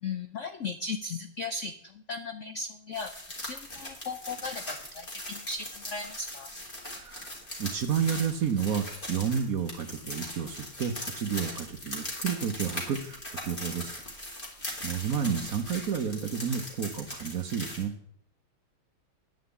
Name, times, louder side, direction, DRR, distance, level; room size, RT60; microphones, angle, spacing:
voice 1, 0.0-3.1 3.4-6.5, left 3 dB, 85° left, 9 dB, 0.6 m, -37 dB
sound 1, 2.9-17.8, left 1 dB, 25° left, 2.9 m, -40 dB
voice 2, 7.0-14.0 14.8-17.9, right 7 dB, 55° right, 8 dB, 1.1 m, -31 dB
10.5 x 5.8 x 8.1 m, 0.67 s
omnidirectional pair, 2.2 m